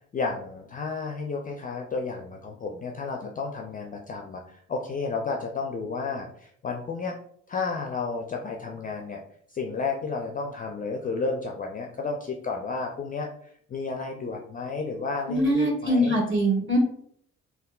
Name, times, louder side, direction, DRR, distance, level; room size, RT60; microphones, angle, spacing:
voice 1, 0.1-7.2 7.5-9.2 9.5-13.3 13.7-16.2, left 4 dB, 25° left, 1 dB, 0.4 m, -32 dB
voice 2, 15.3-16.8, equal, 35° right, -1 dB, 1.4 m, -23 dB
3.5 x 2.2 x 2.3 m, 0.65 s
hypercardioid pair, 45°, 35 cm